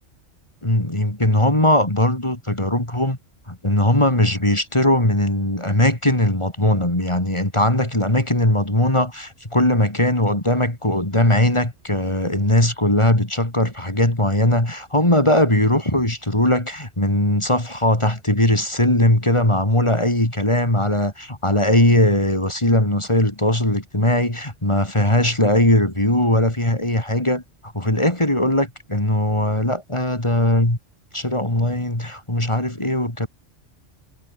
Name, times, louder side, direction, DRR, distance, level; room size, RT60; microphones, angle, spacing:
voice 1, 0.6-3.2 3.5-30.8 31.1-33.3, left 1 dB, 25° left, 3.6 m, -19 dB
omnidirectional pair, 1.2 m